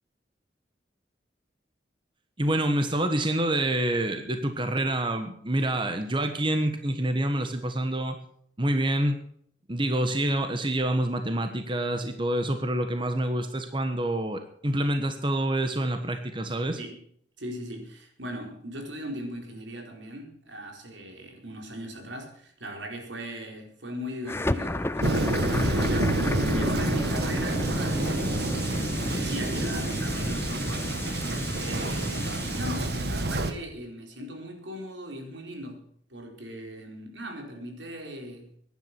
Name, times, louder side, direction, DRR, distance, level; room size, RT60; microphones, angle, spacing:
voice 1, 2.4-8.2 8.6-9.2 9.7-16.8, right 1 dB, 25° right, 1.3 m, -27 dB
voice 2, 17.4-28.1 28.4-31.2 31.6-38.5, equal, 90° right, 4.4 m, -39 dB
sound 1, 24.3-33.4, left 1 dB, 15° left, 0.5 m, -32 dB
Thunder, 25.0-33.5, right 2 dB, 60° right, 1.7 m, -28 dB
16.0 x 11.0 x 6.1 m
head